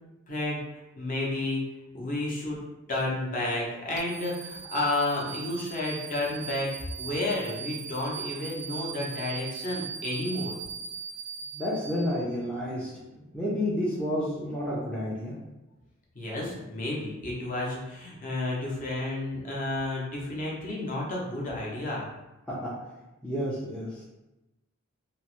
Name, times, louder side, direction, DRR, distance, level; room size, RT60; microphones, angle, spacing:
voice 1, 0.3-1.6 1.9-6.7 7.0-10.5 16.1-22.1, left 2 dB, 40° left, -4 dB, 0.7 m, -31 dB
sound 1, 4.0-12.4, right 7 dB, 50° right, 0.4 m, -40 dB
voice 2, 11.5-15.3 22.5-22.7 23.2-24.0, left 1 dB, 5° left, -8 dB, 0.4 m, -30 dB
3.0 x 2.0 x 3.0 m, 1.0 s
head